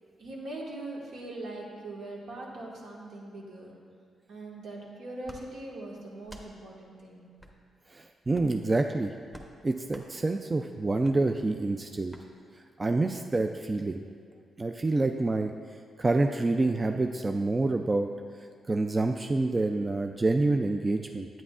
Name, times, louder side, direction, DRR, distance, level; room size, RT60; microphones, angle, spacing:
voice 1, 0.2-3.7 4.3-7.3, right 2 dB, 80° right, -4 dB, 1.6 m, -41 dB
sound 1, 5.2-5.4 6.2-6.5 7.4-7.6 8.3-8.6 9.3-9.5 9.9-10.1 11.0-11.2 12.1-12.3, equal, 5° right, 0.9 m, -48 dB
voice 2, 7.9-9.1 9.6-12.2 12.8-14.0 14.6-15.5 16.0-18.1 18.7-21.3, right 2 dB, 25° right, 5 dB, 0.3 m, -27 dB
9.2 x 8.7 x 2.4 m, 2.2 s
cardioid pair, 80°, 0 cm